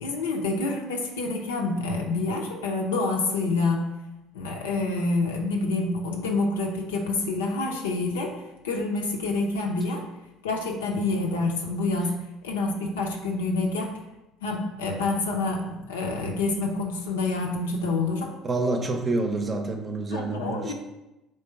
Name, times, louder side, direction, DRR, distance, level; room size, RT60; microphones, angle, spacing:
voice 1, 0.0-3.8 4.3-8.3 8.6-10.0 10.4-12.1 12.4-13.9 14.4-18.3 20.1-20.7, left 3 dB, 85° left, 1 dB, 0.6 m, -27 dB
voice 2, 18.4-20.7, right 2 dB, 35° right, 4 dB, 0.6 m, -27 dB
3.2 x 3.0 x 4.5 m, 0.97 s
hypercardioid pair, 65°, 0 cm